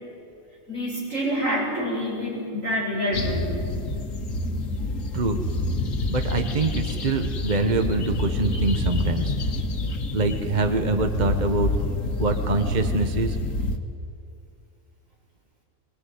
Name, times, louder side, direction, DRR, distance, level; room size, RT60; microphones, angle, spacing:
voice 1, 0.7-3.5, equal, 75° right, -4 dB, 8.2 m, -27 dB
sound 1, 3.1-13.8, left 2 dB, 75° left, 1.8 m, -27 dB
voice 2, 6.1-9.3 10.1-11.7 12.2-13.4, right 3 dB, 35° right, 6 dB, 1.3 m, -25 dB
22.5 x 21.0 x 9.6 m, 2.6 s
omnidirectional pair, 1.4 m